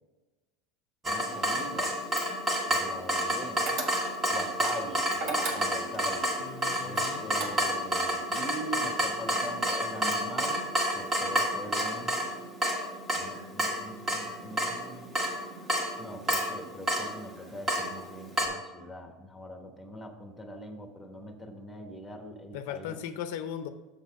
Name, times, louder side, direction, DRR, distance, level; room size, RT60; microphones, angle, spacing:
voice 1, 1.0-2.0 2.7-3.6 4.3-5.0 5.5-6.3 6.8-10.6 10.9-12.2 13.1-15.2 16.0-23.0, equal, 5° left, 5 dB, 1.0 m, -42 dB
Water tap faucet / Drip, 1.0-18.5, equal, 20° right, 1.5 m, -30 dB
sound 1, 3.7-4.3 5.1-6.0 6.9-7.9, right 3 dB, 50° right, 1.3 m, -36 dB
voice 2, 6.4-7.3 22.5-23.7, left 9 dB, 70° left, 10 dB, 0.5 m, -38 dB
7.0 x 4.0 x 6.3 m, 1.2 s
supercardioid pair, 120°, 0 cm